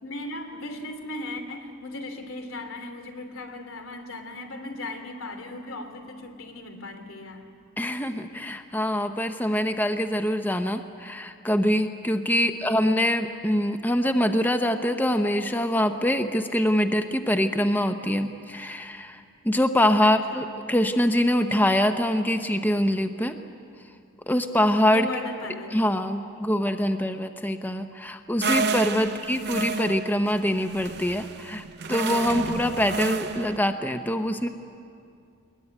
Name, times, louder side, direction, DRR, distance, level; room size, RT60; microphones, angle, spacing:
voice 1, 0.0-7.5 12.3-13.0 20.0-20.5 24.9-25.8 29.0-29.3, left 2 dB, 90° left, 5 dB, 3.0 m, -37 dB
voice 2, 7.8-23.4 24.3-25.1 25.7-34.5, equal, 10° left, 7 dB, 0.7 m, -24 dB
sound 1, 28.4-33.6, right 3 dB, 50° right, 0.8 m, -30 dB
22.0 x 21.0 x 9.7 m, 2.4 s
head